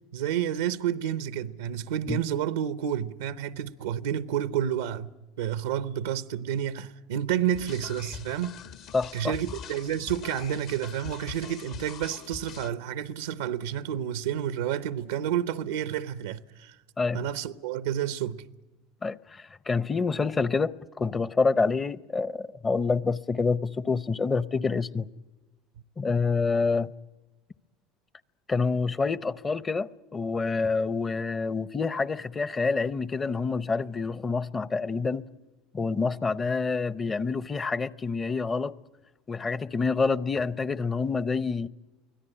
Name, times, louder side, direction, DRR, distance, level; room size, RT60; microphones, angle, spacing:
voice 1, 0.1-8.6 9.1-16.8 17.1-18.5, right 10 dB, 90° right, 0.7 m, -30 dB
sound 1, 7.5-12.7, left 8 dB, 60° left, 1.3 m, -43 dB
voice 2, 8.9-9.3 17.0-17.2 19.0-25.1 26.0-26.9 28.5-35.2 35.7-38.7 39.3-41.7, left 4 dB, 25° left, 0.7 m, -27 dB
24.5 x 17.0 x 10.0 m
hypercardioid pair, 90°, 0 cm